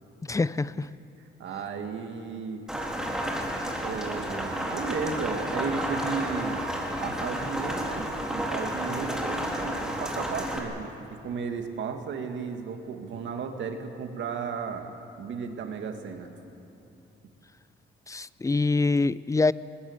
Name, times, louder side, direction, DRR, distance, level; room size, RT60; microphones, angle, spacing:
voice 1, 0.3-0.9 18.1-19.5, left 3 dB, 15° left, 18 dB, 0.5 m, -25 dB
voice 2, 1.4-2.6 3.8-6.6 7.0-14.9 15.2-16.3, right 5 dB, 70° right, 5 dB, 2.2 m, -34 dB
Rain, 2.7-10.6, equal, 5° right, 3.5 m, -31 dB
21.0 x 21.0 x 8.2 m, 2.8 s
cardioid pair, 90°, 20 cm